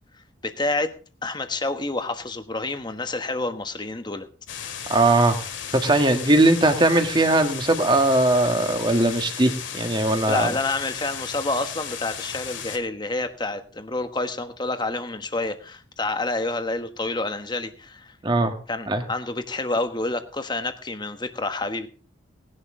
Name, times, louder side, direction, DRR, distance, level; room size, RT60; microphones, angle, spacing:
voice 1, 0.4-0.9 1.2-4.3 10.3-18.2 18.7-21.9, left 2 dB, 25° left, 8 dB, 1.3 m, -28 dB
sound 1, 4.5-12.8, left 8 dB, 75° left, 2.2 m, -35 dB
voice 2, 4.9-5.4 5.7-10.5 18.2-18.5 18.9-19.0, right 2 dB, 25° right, 6 dB, 1.6 m, -19 dB
18.5 x 11.0 x 3.8 m, 0.36 s
head